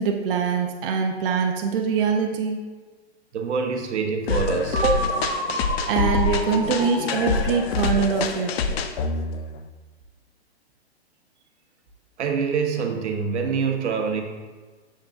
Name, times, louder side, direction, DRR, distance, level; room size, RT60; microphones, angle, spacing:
voice 1, 0.0-2.6 5.9-8.6, right 6 dB, 55° right, 3 dB, 0.5 m, -24 dB
voice 2, 3.3-5.0 12.2-14.2, right 5 dB, 85° right, 4 dB, 0.8 m, -25 dB
sound 1, 4.3-9.7, left 4 dB, 65° left, 0.4 m, -26 dB
sound 2, 4.7-8.6, right 1 dB, 20° left, 1.2 m, -31 dB
6.3 x 3.5 x 2.3 m, 1.4 s
hypercardioid pair, 145°, 34 cm